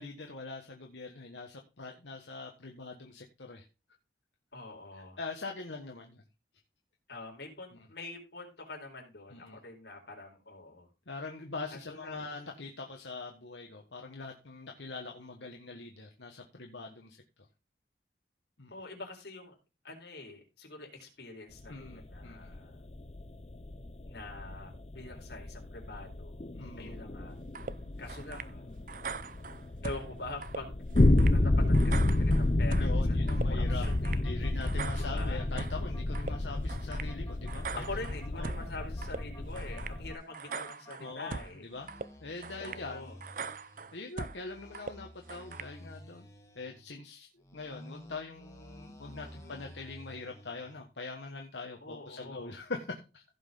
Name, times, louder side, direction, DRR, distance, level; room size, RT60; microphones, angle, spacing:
voice 1, 0.0-3.6 5.2-6.2 9.3-9.6 11.1-17.2 18.6-18.7 21.7-22.6 26.5-27.0 32.8-33.9 34.2-37.8 38.3-38.7 41.0-41.9 42.2-43.1 43.9-46.3 46.5-53.2, left 3 dB, 90° left, 2 dB, 1.5 m, -43 dB
voice 2, 4.5-5.2 7.1-10.9 11.7-12.3 18.7-19.6 19.8-22.8 24.1-26.4 26.8-27.4 28.0-28.9 29.8-30.8 31.3-34.2 35.1-35.5 37.8-41.7 42.6-43.2 49.0-49.7 51.8-52.6, left 2 dB, 70° left, 1 dB, 4.2 m, -45 dB
sound 1, 21.6-40.1, left 2 dB, 35° left, 0.6 m, -30 dB
sound 2, 27.6-27.7 28.1-28.5 28.9-30.1 30.4-30.6 31.0-31.4 31.7-32.9 33.3-33.5 33.8-34.2 34.6-35.8 36.2-36.3 36.7-37.1 37.5-38.7 39.0-39.2 39.6-40.0 40.3-41.5 41.9-42.1 42.4-42.8 43.2-44.4 44.7-44.9 45.3-45.7, right 5 dB, 50° right, 0.5 m, -41 dB
sound 3, 33.7-41.3 41.7-43.9 44.3-46.9 47.4-50.8, equal, 15° left, 1.5 m, -52 dB
16.0 x 5.6 x 3.9 m, 0.30 s
head